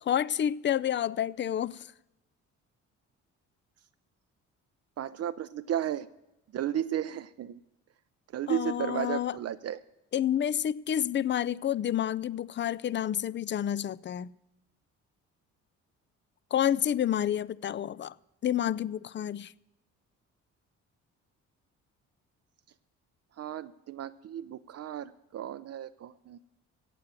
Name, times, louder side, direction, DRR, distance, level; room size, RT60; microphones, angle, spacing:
voice 1, 0.1-1.9 8.5-9.3 10.1-14.3 16.5-18.1 18.4-19.5, left 10 dB, 40° left, 0.5 m, -29 dB
voice 2, 5.0-6.1 6.5-7.6 8.3-9.8 23.4-26.4, right 10 dB, 55° right, 0.6 m, -34 dB
16.0 x 7.6 x 9.0 m
cardioid pair, 90°, 30 cm